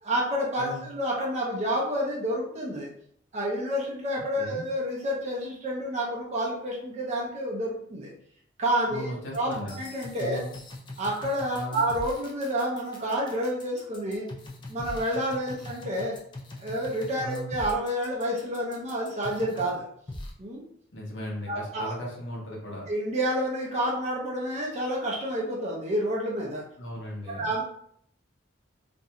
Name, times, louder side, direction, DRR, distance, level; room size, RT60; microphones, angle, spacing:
voice 1, 0.0-2.9 3.3-8.1 8.6-10.4 11.0-14.3 14.7-16.1 16.6-19.9 20.4-20.6 21.5-21.8 22.9-26.6 27.3-27.6, equal, 35° right, -3 dB, 0.5 m, -29 dB
voice 2, 8.9-9.8 10.2-10.5 11.5-11.9 17.2-17.5 20.9-22.9 26.8-27.5, equal, 65° left, -2 dB, 0.8 m, -36 dB
sound 1, 9.3-19.7 20.1-20.3, left 2 dB, 25° left, 0.3 m, -41 dB
2.4 x 2.1 x 2.8 m, 0.66 s
head